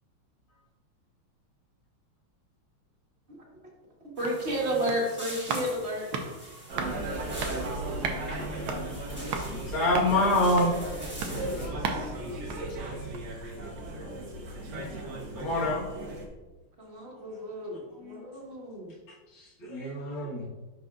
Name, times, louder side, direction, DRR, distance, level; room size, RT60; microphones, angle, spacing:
sound 1, 3.9-13.4 13.8-13.9, right 5 dB, 85° right, 1.6 m, -38 dB
voice 1, 4.0-6.1 16.8-18.9, equal, 35° right, -2 dB, 1.5 m, -32 dB
sound 2, 4.2-11.7, right 1 dB, 5° right, 1.2 m, -44 dB
sound 3, 6.7-16.3, right 2 dB, 60° right, 1.4 m, -36 dB
voice 2, 7.1-7.7 11.2-13.4 14.6-14.9, left 3 dB, 50° left, -3 dB, 1.7 m, -48 dB
voice 3, 9.4-10.7 15.3-15.8 18.0-18.2 19.3-20.5, left 1 dB, 75° left, -7 dB, 2.3 m, -26 dB
10.5 x 4.1 x 2.4 m, 1.2 s
omnidirectional pair, 2.3 m